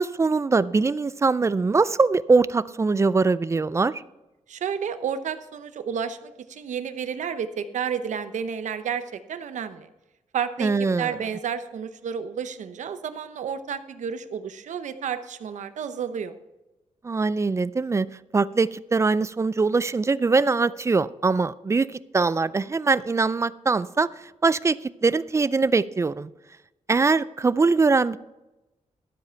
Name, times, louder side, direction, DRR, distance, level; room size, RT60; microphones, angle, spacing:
voice 1, 0.0-4.0 10.6-11.1 17.0-18.1 18.3-26.3 26.9-28.2, right 4 dB, 25° right, 17 dB, 0.3 m, -22 dB
voice 2, 4.5-9.9 10.3-10.7 11.0-16.3, right 7 dB, 75° right, 11 dB, 0.8 m, -31 dB
12.5 x 7.5 x 4.5 m, 1.0 s
wide cardioid pair, 110°, 13 cm